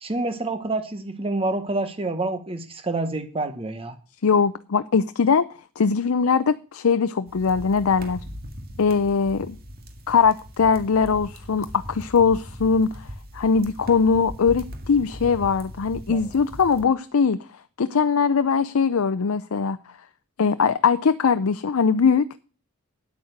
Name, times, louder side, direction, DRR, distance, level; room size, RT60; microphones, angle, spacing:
voice 1, 0.0-4.0 16.1-16.2, right 2 dB, 25° right, 1.0 m, -27 dB
voice 2, 4.2-5.5 5.8-8.2 8.8-9.6 10.1-13.1 13.3-17.4 17.8-19.8 20.4-22.2, left 5 dB, 70° left, 0.5 m, -21 dB
sound 1, 7.3-16.8, equal, 45° right, 2.1 m, -40 dB
9.6 x 8.7 x 6.5 m
head